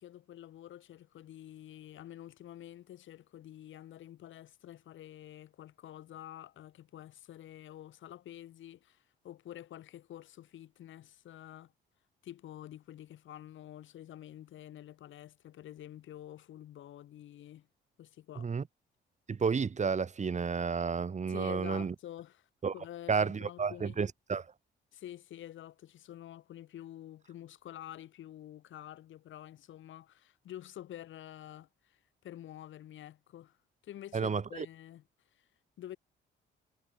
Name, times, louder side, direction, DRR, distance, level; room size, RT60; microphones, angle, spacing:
voice 1, 0.0-11.7 12.2-17.7 18.0-18.5 21.3-24.0 24.9-36.0, left 12 dB, 75° left, 5.2 m, -48 dB
voice 2, 19.3-21.9 22.6-22.7 23.1-24.4 34.1-34.7, right 5 dB, 35° right, 2.5 m, -31 dB
cardioid pair, 90°, 20 cm